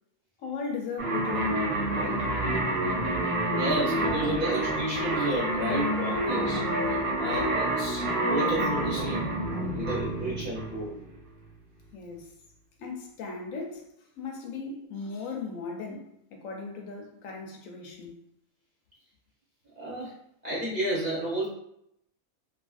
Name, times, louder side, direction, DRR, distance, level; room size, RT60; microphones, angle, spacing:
voice 1, 0.4-2.3 10.0-10.2 11.9-12.3 12.8-18.2, left 4 dB, 80° left, 1.0 m, -38 dB
sound 1, 1.0-11.1, right 1 dB, 90° right, 1.1 m, -28 dB
voice 2, 3.5-6.6 6.9-9.3 9.7-10.9 19.8-20.2 20.4-21.5, right 1 dB, 40° right, 0.8 m, -31 dB
2.7 x 2.5 x 2.3 m
omnidirectional pair, 1.4 m